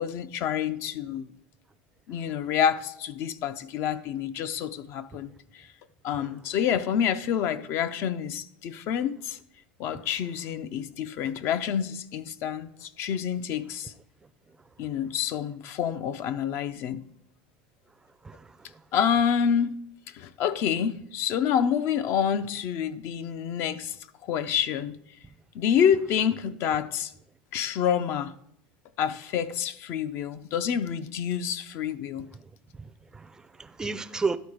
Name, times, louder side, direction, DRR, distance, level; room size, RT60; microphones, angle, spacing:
voice 1, 0.0-1.3 2.1-5.7 6.0-9.4 9.8-13.9 14.8-17.0 18.9-19.8 20.1-24.0 24.2-25.0 25.5-27.1 27.5-28.3 29.0-32.3, left 8 dB, 55° left, 0.5 m, -28 dB
voice 2, 18.2-18.8 32.7-34.4, right 4 dB, 15° right, 0.4 m, -33 dB
11.5 x 3.9 x 4.9 m
supercardioid pair, 105°, 5 cm